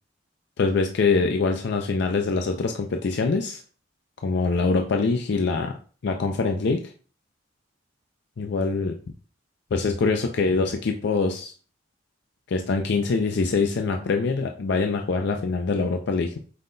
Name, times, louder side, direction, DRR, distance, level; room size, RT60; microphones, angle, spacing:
voice 1, 0.6-3.6 4.2-5.8 6.0-6.9 8.4-9.0 9.7-11.5 12.5-16.4, left 4 dB, 65° left, 4 dB, 0.4 m, -24 dB
5.5 x 2.2 x 3.8 m, 0.40 s
head